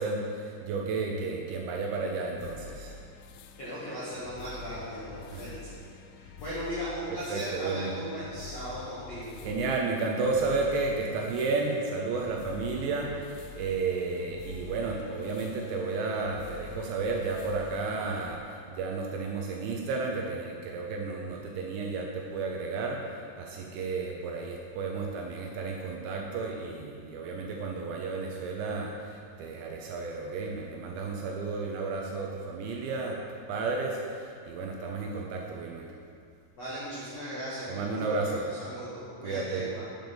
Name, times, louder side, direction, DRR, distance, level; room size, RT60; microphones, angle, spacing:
voice 1, 0.0-3.0 5.3-5.4 7.1-7.9 9.4-33.2 33.5-35.9 37.7-38.5 39.2-39.6, right 3 dB, 80° right, 0 dB, 2.8 m, -32 dB
sound 1, 2.4-18.4, left 5 dB, 90° left, 3.3 m, -47 dB
voice 2, 3.6-5.7 6.2-9.3 36.6-39.8, equal, 55° left, -11 dB, 1.8 m, -37 dB
9.0 x 7.8 x 5.2 m, 2.3 s
omnidirectional pair, 5.7 m